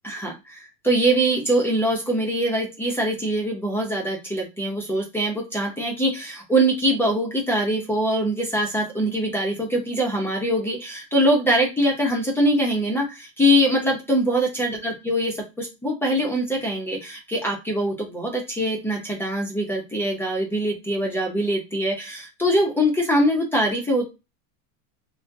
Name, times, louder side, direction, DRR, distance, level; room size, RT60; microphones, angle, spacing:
voice 1, 0.0-24.1, equal, 5° left, -1 dB, 0.5 m, -23 dB
3.4 x 2.2 x 2.6 m, 0.26 s
supercardioid pair, 145°, 47 cm